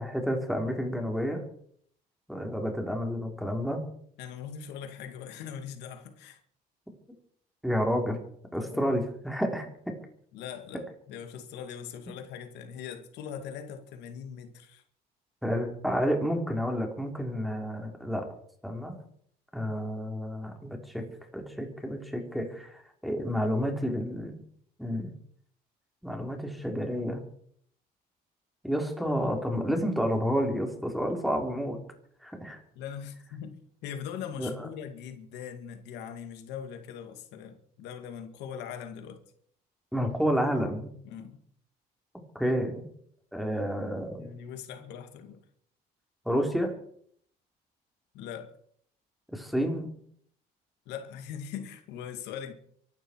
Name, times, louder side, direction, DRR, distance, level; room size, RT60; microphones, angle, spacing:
voice 1, 0.0-1.4 2.3-3.9 7.6-8.2 8.5-9.7 15.4-18.3 18.6-19.0 19.5-21.0 21.3-22.7 23.0-24.3 24.8-25.1 26.0-27.2 28.6-31.8 32.2-32.6 34.4-34.7 39.9-40.9 42.4-42.9 43.3-44.2 46.3-46.7 49.3-49.9, equal, ahead, 4.1 m, -30 dB
voice 2, 4.2-6.4 8.5-8.9 10.3-14.8 32.8-39.2 41.0-41.4 44.2-45.4 48.1-48.5 50.9-52.5, left 8 dB, 85° left, 2.3 m, -41 dB
24.5 x 12.0 x 4.7 m
cardioid pair, 110°, 17 cm